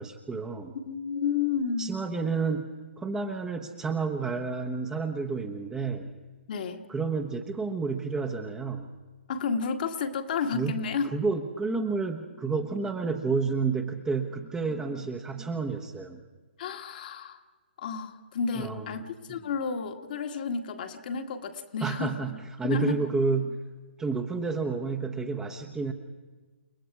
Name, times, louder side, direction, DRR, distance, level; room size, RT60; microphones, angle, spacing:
voice 1, 0.0-0.7 1.8-2.7 3.0-6.1 6.9-8.9 10.5-10.7 11.1-16.2 18.5-19.0 21.8-23.6 24.0-25.9, right 4 dB, 10° right, 4 dB, 1.2 m, -30 dB
voice 2, 0.9-2.0 6.5-6.8 9.3-11.1 16.6-17.4 17.8-22.2 22.6-23.0, left 5 dB, 50° left, 4 dB, 1.8 m, -31 dB
29.5 x 18.5 x 4.9 m, 1.3 s
figure-of-eight pair, 130°, 6 cm